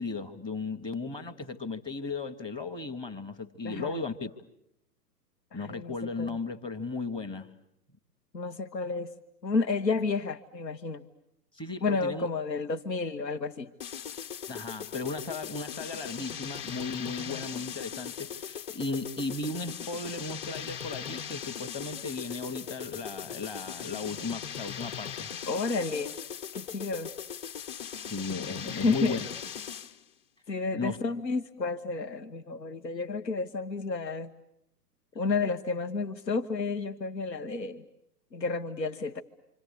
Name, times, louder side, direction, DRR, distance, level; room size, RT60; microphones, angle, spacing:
voice 1, 0.0-4.3 5.5-7.5 11.5-12.3 14.5-25.3 28.1-29.3 30.7-31.0, left 3 dB, 10° left, 8 dB, 1.0 m, -36 dB
voice 2, 3.6-4.0 5.5-6.4 8.3-9.1 9.4-11.0 11.8-13.7 17.3-17.4 25.5-26.2 26.5-27.1 28.6-29.2 30.5-34.3 35.1-37.8 38.3-39.2, left 4 dB, 85° left, 7 dB, 1.1 m, -31 dB
sound 1, 13.8-30.0, left 8 dB, 35° left, 1.3 m, -39 dB
27.0 x 26.5 x 8.2 m, 0.79 s
figure-of-eight pair, 120°, 49 cm